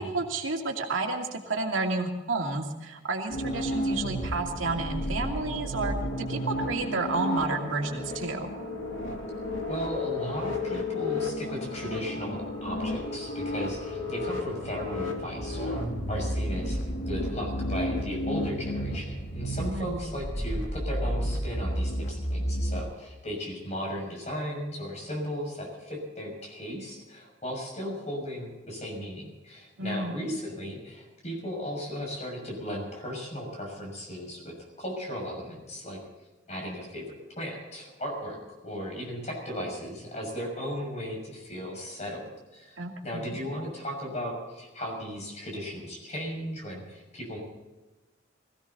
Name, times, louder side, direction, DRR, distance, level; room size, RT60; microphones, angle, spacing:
voice 1, 0.0-8.5 19.7-20.0 29.8-30.2 42.8-43.4, right 3 dB, 85° right, 2 dB, 2.5 m, -31 dB
sound 1, 3.3-22.8, left 1 dB, 85° left, 3.2 m, -32 dB
voice 2, 9.7-16.8 17.1-36.0 36.5-37.1 37.4-42.8 43.0-47.4, equal, 35° left, 0 dB, 6.4 m, -36 dB
21.5 x 16.0 x 4.1 m, 1.1 s
head